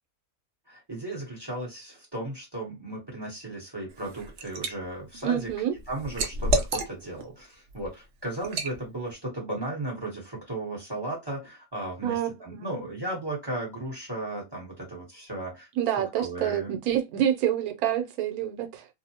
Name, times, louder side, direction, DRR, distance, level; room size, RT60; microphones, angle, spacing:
voice 1, 0.7-5.5 5.9-15.7 16.2-16.8, right 2 dB, 20° right, 0.9 m, -35 dB
Liquid, 3.9-4.7 5.1-7.2 7.7-7.9 8.4-8.8, right 2 dB, 65° right, 0.8 m, -29 dB
voice 2, 5.2-5.7 12.0-12.7 15.8-18.9, right 10 dB, 90° right, 1.1 m, -27 dB
2.6 x 2.0 x 2.7 m
omnidirectional pair, 1.5 m